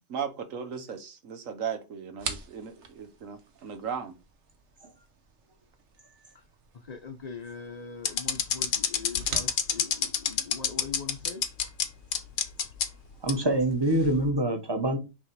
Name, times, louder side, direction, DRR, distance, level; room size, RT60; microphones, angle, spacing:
voice 1, 0.1-4.1, right 7 dB, 90° right, 1.4 m, -36 dB
sound 1, 2.2-13.8, right 5 dB, 65° right, 1.3 m, -46 dB
voice 2, 6.7-11.4, left 5 dB, 45° left, 0.5 m, -42 dB
sound 2, 8.0-11.9 12.1-12.9 13.3-13.4 14.0-14.3, left 8 dB, 75° left, 1.2 m, -26 dB
voice 3, 13.2-15.0, right 1 dB, 20° right, 1.0 m, -25 dB
6.0 x 3.4 x 4.6 m
omnidirectional pair, 1.3 m